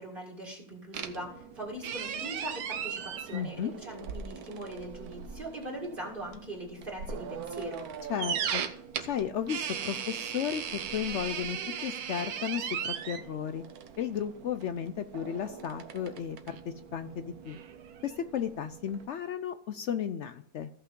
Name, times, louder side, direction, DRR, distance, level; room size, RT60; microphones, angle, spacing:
voice 1, 0.0-7.9, right 1 dB, 35° right, -1 dB, 2.3 m, -41 dB
sound 1, 0.9-19.1, right 8 dB, 90° right, 1.4 m, -39 dB
voice 2, 3.3-3.7 8.1-8.6 9.0-13.6 14.0-17.6 18.0-20.7, left 8 dB, 65° left, 10 dB, 0.8 m, -34 dB
15.5 x 5.7 x 3.7 m, 0.65 s
omnidirectional pair, 1.5 m